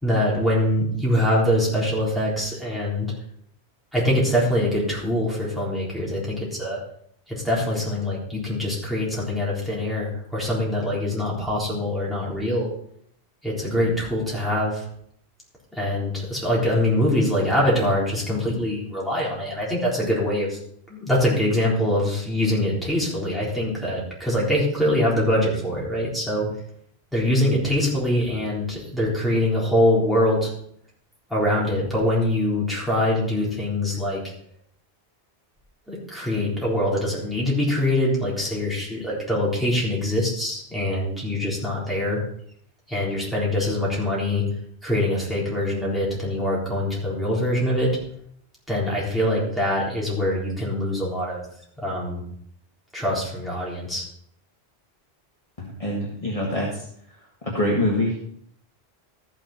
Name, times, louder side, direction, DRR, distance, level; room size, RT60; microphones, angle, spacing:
voice 1, 0.0-3.1 3.9-6.8 7.3-12.7 13.4-14.8 15.7-20.6 20.9-26.5 27.1-30.5 31.3-34.2 35.9-42.2 42.9-44.4 44.8-47.9 48.7-51.4 51.8-52.2 52.9-54.1, left 1 dB, ahead, -6 dB, 3.8 m, -23 dB
voice 2, 55.6-56.8 57.4-58.2, left 1 dB, 35° left, -3 dB, 1.7 m, -25 dB
13.5 x 6.4 x 4.3 m, 0.66 s
omnidirectional pair, 1.1 m